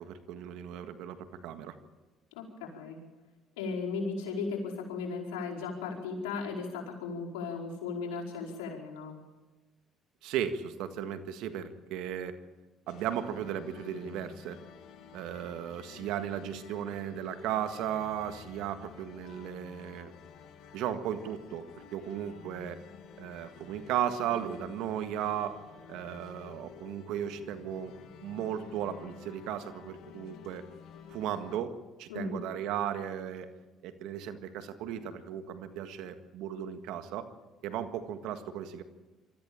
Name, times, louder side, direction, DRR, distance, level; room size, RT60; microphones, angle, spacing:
voice 1, 0.0-1.7 10.2-12.3 12.9-14.6 15.1-20.1 20.7-22.8 23.2-25.6 25.9-27.9 28.2-30.6 31.1-33.5 33.8-37.3 37.6-38.8, right 9 dB, 80° right, 9 dB, 1.7 m, -36 dB
voice 2, 2.3-3.0 3.6-9.1 32.1-32.5, left 4 dB, 90° left, -2 dB, 5.0 m, -36 dB
sound 1, 12.9-31.6, left 7 dB, 70° left, 2.2 m, -52 dB
23.5 x 14.0 x 8.9 m, 1.2 s
supercardioid pair, 70°, 0 cm